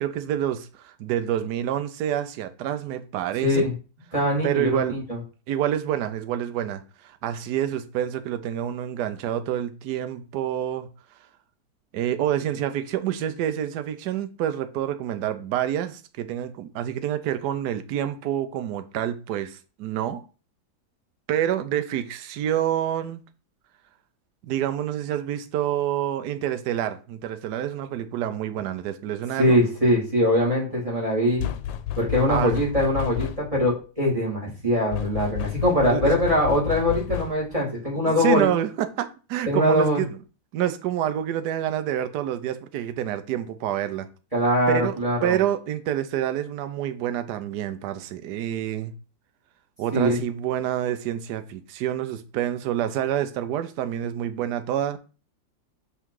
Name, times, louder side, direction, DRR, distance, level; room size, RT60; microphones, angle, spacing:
voice 1, 0.0-3.7 4.4-5.0 5.5-10.9 11.9-20.2 21.3-23.2 24.4-29.6 32.3-32.6 35.9-36.1 38.0-40.2 40.5-44.1 44.7-44.9 45.2-48.9 49.8-55.0, right 11 dB, 70° right, 1.2 m, -27 dB
voice 2, 3.4-3.7 4.1-5.2 29.4-31.4 32.0-38.5 39.5-40.0 44.3-45.4 49.9-50.2, equal, 20° right, 2.4 m, -22 dB
sound 1, 31.4-33.6 34.9-37.6, left 11 dB, 90° left, 1.3 m, -31 dB
5.6 x 3.7 x 4.7 m
omnidirectional pair, 2.0 m